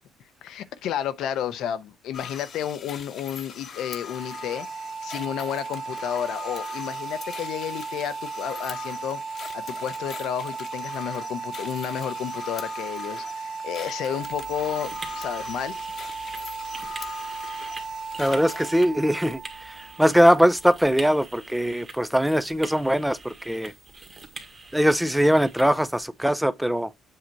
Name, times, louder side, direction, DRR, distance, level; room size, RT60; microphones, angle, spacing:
voice 1, 0.4-15.8, left 10 dB, 70° left, 0.7 m, -32 dB
sound 1, 2.1-18.8, left 6 dB, 50° left, 1.0 m, -42 dB
sound 2, 4.0-21.0, right 5 dB, 45° right, 1.0 m, -36 dB
sound 3, 14.2-26.1, right 3 dB, 25° right, 1.6 m, -44 dB
voice 2, 18.2-23.7 24.7-26.9, equal, 5° right, 0.5 m, -21 dB
7.7 x 2.8 x 4.6 m
cardioid pair, 100°, 0 cm